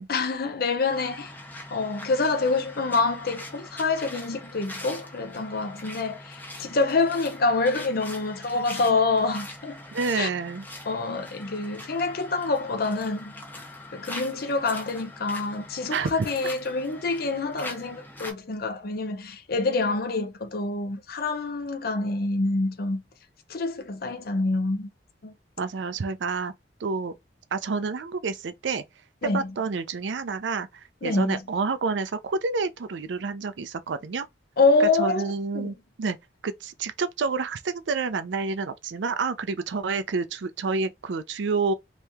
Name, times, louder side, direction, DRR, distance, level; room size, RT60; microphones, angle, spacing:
voice 1, 0.1-1.3 1.7-9.8 10.1-10.3 10.9-13.4 13.9-23.0 23.5-24.9 25.2-25.3 29.2-29.5 31.0-31.4 34.6-35.7, left 3 dB, 60° left, 0.6 m, -26 dB
sound 1, 0.9-18.3, left 1 dB, 10° left, 1.0 m, -42 dB
voice 2, 9.9-10.7 15.9-16.1 25.6-26.5 26.8-27.1 27.5-28.8 29.3-34.3 34.8-36.2 36.4-41.7, right 4 dB, 85° right, 0.5 m, -29 dB
3.0 x 2.8 x 3.4 m
head